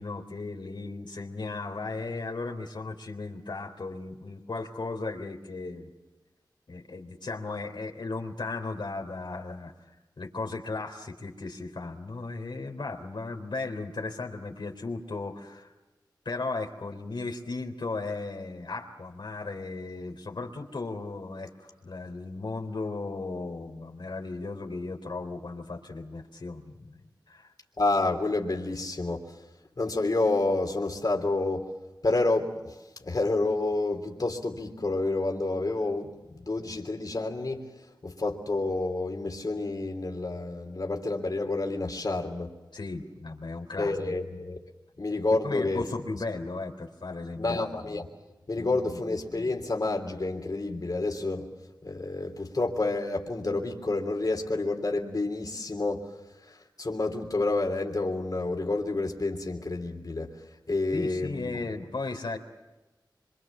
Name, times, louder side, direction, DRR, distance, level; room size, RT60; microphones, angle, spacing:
voice 1, 0.0-5.9 6.7-9.7 10.2-15.7 16.3-27.0 27.3-27.5 42.7-44.0 45.3-47.6 48.6-49.0 60.9-62.4, left 3 dB, 75° left, 3 dB, 3.6 m, -36 dB
voice 2, 27.8-29.3 29.8-31.7 32.0-32.7 33.0-37.6 38.0-42.5 43.8-44.6 45.0-45.8 47.4-48.1 48.5-51.5 51.8-56.0 56.5-60.3 60.7-61.5, left 2 dB, 55° left, 3 dB, 3.2 m, -29 dB
26.0 x 25.5 x 7.3 m, 1.1 s
wide cardioid pair, 70°, 8 cm